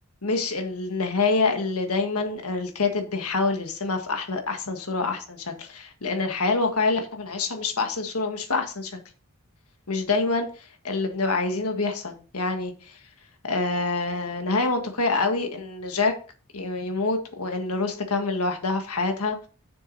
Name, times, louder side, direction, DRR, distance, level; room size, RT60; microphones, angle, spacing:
voice 1, 0.2-9.0 9.9-13.0 13.5-16.1 16.5-19.4, left 3 dB, 85° left, 1.6 m, -26 dB
7.0 x 6.5 x 4.0 m
head